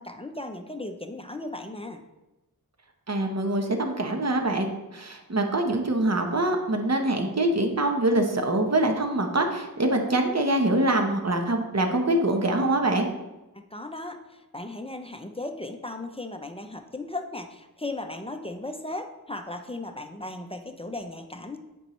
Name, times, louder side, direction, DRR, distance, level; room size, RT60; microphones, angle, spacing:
voice 1, 0.0-2.0 13.5-21.6, left 2 dB, 15° left, 6 dB, 0.5 m, -36 dB
voice 2, 3.1-13.1, right 1 dB, 45° right, 4 dB, 1.0 m, -24 dB
9.6 x 5.3 x 3.1 m, 1.0 s
wide cardioid pair, 85°, 36 cm